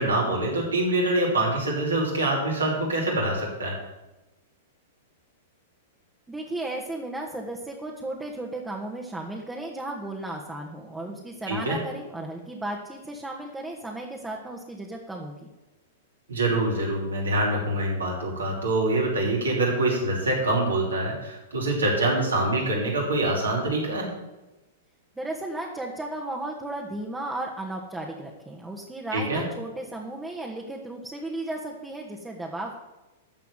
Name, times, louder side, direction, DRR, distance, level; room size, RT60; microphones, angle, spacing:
voice 1, 0.0-3.7 11.5-11.8 16.3-24.1 29.1-29.4, right 2 dB, 85° right, -2 dB, 5.7 m, -25 dB
voice 2, 6.3-15.5 25.2-32.8, right 2 dB, 10° right, -1 dB, 2.0 m, -35 dB
13.5 x 5.8 x 9.2 m, 1.0 s
hypercardioid pair, 110°, 0 cm